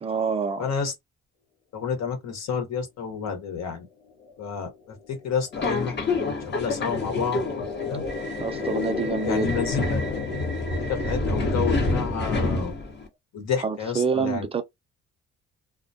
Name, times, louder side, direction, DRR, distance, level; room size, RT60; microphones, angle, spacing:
voice 1, 0.0-0.7 8.4-9.5 13.6-14.6, right 5 dB, 20° right, 0.3 m, -27 dB
voice 2, 0.6-0.9 1.7-3.8 4.4-8.0 9.2-10.0 10.9-12.7 13.3-14.4, left 6 dB, 60° left, 1.0 m, -30 dB
sound 1, 4.1-12.9, left 5 dB, 80° left, 0.7 m, -34 dB
Subway metro underground, 5.5-13.1, left 2 dB, 35° left, 0.8 m, -28 dB
2.2 x 2.1 x 2.6 m
cardioid pair, 90°, 30 cm